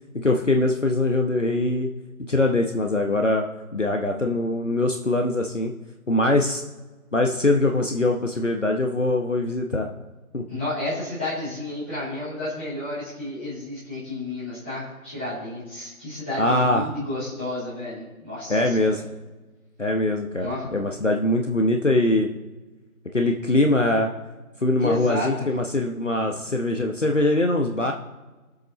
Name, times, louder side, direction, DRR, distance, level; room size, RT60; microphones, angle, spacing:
voice 1, 0.1-1.9 2.3-3.5 3.7-5.7 6.1-6.6 7.1-9.9 10.3-10.4 16.4-16.8 18.5-19.0 19.8-22.3 23.1-24.1 24.6-27.9, left 2 dB, 55° left, 3 dB, 1.1 m, -22 dB
voice 2, 10.5-19.0 20.3-20.7 24.8-25.5, left 1 dB, 10° left, -15 dB, 3.9 m, -31 dB
20.5 x 7.8 x 3.2 m, 1.2 s
figure-of-eight pair, 175°, 44 cm